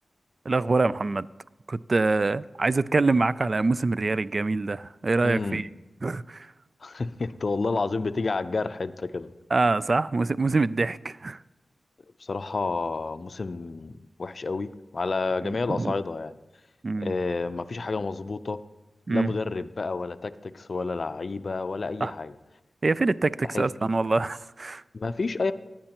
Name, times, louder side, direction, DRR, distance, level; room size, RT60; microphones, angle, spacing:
voice 1, 0.5-1.3 1.7-5.7 6.0-6.5 9.5-11.4 15.4-15.9 16.8-17.2 19.1-19.3 22.0-22.1 22.8-24.8, right 3 dB, 50° right, 0.3 m, -25 dB
voice 2, 5.2-5.6 6.8-9.3 12.2-16.4 17.0-18.6 19.1-22.4 23.5-23.7 24.9-25.5, left 3 dB, 60° left, 0.5 m, -30 dB
17.5 x 8.7 x 2.9 m
cardioid pair, 40°, 0 cm